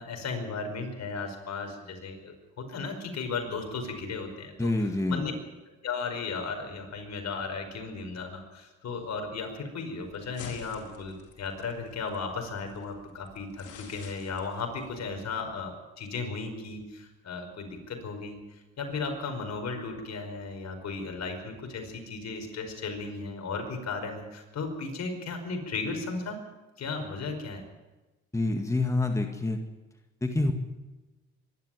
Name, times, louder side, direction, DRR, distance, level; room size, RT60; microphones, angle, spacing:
voice 1, 0.0-5.3 5.8-26.4 26.8-27.6, left 4 dB, 60° left, 4 dB, 5.3 m, -35 dB
voice 2, 4.6-5.2 28.3-29.6 30.2-30.5, left 2 dB, 10° left, 4 dB, 2.0 m, -27 dB
sound 1, 10.0-15.4, left 6 dB, 80° left, 4.4 m, -50 dB
24.0 x 12.0 x 9.3 m, 1.1 s
cardioid pair, 90°, 30 cm